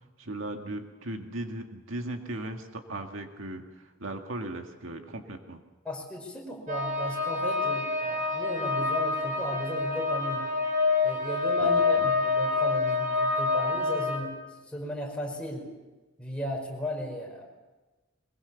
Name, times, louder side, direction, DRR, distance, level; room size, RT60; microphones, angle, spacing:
voice 1, 0.2-3.6 4.0-5.6 11.6-11.7 12.0-12.1, right 1 dB, 75° right, 4 dB, 1.9 m, -37 dB
voice 2, 5.8-10.5 11.0-14.4 14.7-15.7 16.2-17.4, left 1 dB, 5° left, -1 dB, 5.4 m, -35 dB
sound 1, 6.7-14.2, left 3 dB, 40° right, 4.5 m, -27 dB
22.5 x 21.5 x 7.1 m, 1.2 s
head